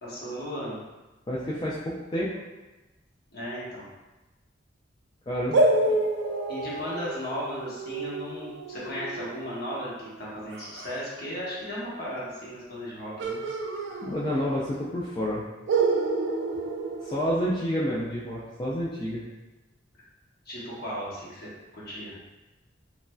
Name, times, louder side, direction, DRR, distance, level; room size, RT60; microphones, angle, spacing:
voice 1, 0.0-0.8 3.3-3.9 5.8-6.0 6.5-13.4 20.5-22.1, equal, 55° left, -7 dB, 0.9 m, -36 dB
voice 2, 1.3-2.4 5.3-5.6 14.0-15.4 17.0-19.2, equal, 25° left, -7 dB, 0.3 m, -29 dB
sound 1, 5.5-11.0 13.2-14.7 14.9-15.0 15.7-17.9, right 2 dB, 80° right, 0.4 m, -29 dB
3.1 x 2.5 x 2.2 m, 1.1 s
head